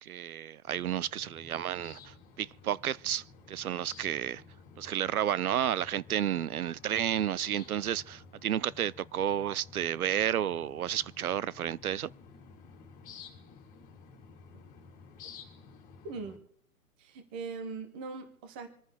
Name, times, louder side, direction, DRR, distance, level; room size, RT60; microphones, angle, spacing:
voice 1, 0.0-4.4 4.8-12.1, right 10 dB, 80° right, 0.6 m, -31 dB
sound 1, 0.7-16.4, left 5 dB, 20° left, 3.4 m, -53 dB
voice 2, 16.0-16.4 17.0-18.7, right 4 dB, 5° right, 0.4 m, -40 dB
26.5 x 9.5 x 3.4 m
hypercardioid pair, 135°, 43 cm